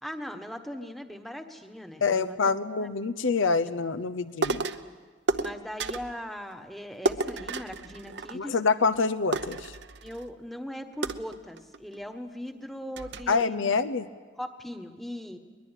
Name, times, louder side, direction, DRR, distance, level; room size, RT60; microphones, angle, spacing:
voice 1, 0.0-2.4 2.8-2.9 3.6-3.7 4.8-5.0 5.4-8.6 10.0-13.8 14.3-15.4, equal, ahead, 6 dB, 1.3 m, -39 dB
voice 2, 2.0-4.6 8.3-9.7 13.3-14.1, left 4 dB, 85° left, 14 dB, 0.7 m, -26 dB
sound 1, 4.4-4.9 5.3-6.2 7.0-8.6 8.9-9.0 9.3-10.3 11.0-12.0 12.5-12.6 13.0-13.4, right 3 dB, 60° right, 0.8 m, -32 dB
22.0 x 21.5 x 9.1 m, 1.4 s
head